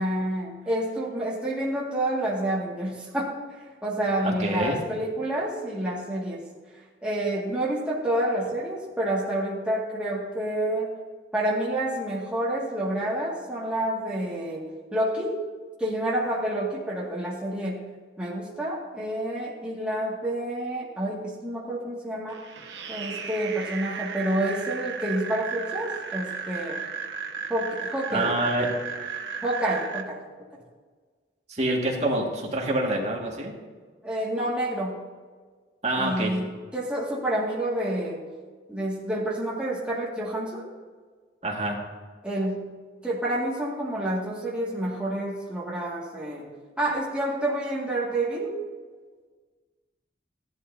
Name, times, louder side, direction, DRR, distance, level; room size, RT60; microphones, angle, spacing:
voice 1, 0.0-3.4 3.8-6.5 7.0-10.9 11.3-14.7 14.9-15.4 15.8-17.9 18.2-22.4 22.9-26.8 27.5-28.3 29.4-30.2 30.5-30.6 34.0-35.0 36.0-38.2 38.7-40.7 42.2-42.7 43.0-46.5 46.8-48.6, right 1 dB, 5° right, -6 dB, 2.1 m, -28 dB
voice 2, 4.2-4.8 28.1-28.7 31.5-33.5 35.8-36.3 41.4-41.8, right 1 dB, 40° right, -1 dB, 2.0 m, -26 dB
sound 1, 22.3-30.0, right 6 dB, 80° right, 1.0 m, -35 dB
15.5 x 11.5 x 2.8 m, 1.5 s
head